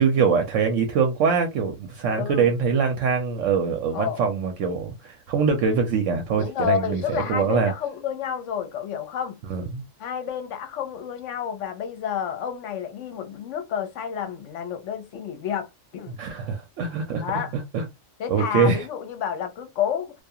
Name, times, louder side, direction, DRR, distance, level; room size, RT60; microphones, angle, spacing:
voice 1, 0.0-7.7 9.5-9.8 16.2-17.8 18.3-18.9, right 5 dB, 75° right, 0.9 m, -23 dB
voice 2, 2.1-2.5 3.9-4.2 6.4-9.4 10.0-16.2 17.2-17.5 18.2-20.2, left 8 dB, 75° left, 1.0 m, -30 dB
2.4 x 2.3 x 2.7 m
omnidirectional pair, 1.3 m